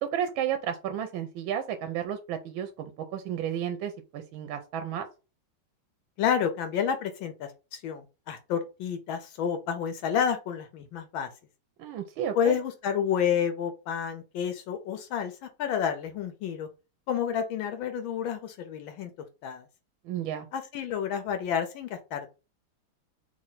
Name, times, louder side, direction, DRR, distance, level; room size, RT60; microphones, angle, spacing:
voice 1, 0.0-5.1 11.8-12.6 20.0-20.5, right 9 dB, 80° right, 1.3 m, -32 dB
voice 2, 6.2-11.3 12.3-16.7 17.1-19.1 19.4-19.6 20.5-22.3, left 8 dB, 75° left, 1.3 m, -30 dB
3.2 x 3.2 x 3.9 m
omnidirectional pair, 2.3 m